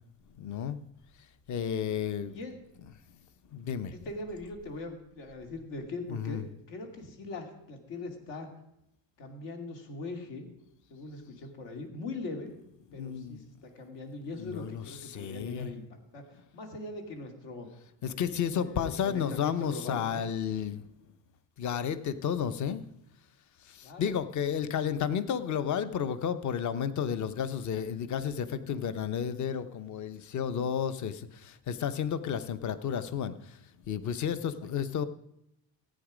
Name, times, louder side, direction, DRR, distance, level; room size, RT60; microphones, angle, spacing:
voice 1, 0.4-0.8 1.2-2.4 3.5-3.9 6.1-6.4 12.9-13.5 14.4-15.7 18.0-20.8 21.6-22.8 23.6-35.0, left 8 dB, 40° left, 14 dB, 0.8 m, -32 dB
voice 2, 2.2-2.6 3.9-6.4 6.7-8.5 9.2-10.5 10.9-12.5 12.9-17.7 18.1-20.3 23.8-24.2, left 2 dB, 70° left, 4 dB, 2.7 m, -41 dB
15.0 x 9.0 x 5.0 m, 0.80 s
cardioid pair, 130°, 44 cm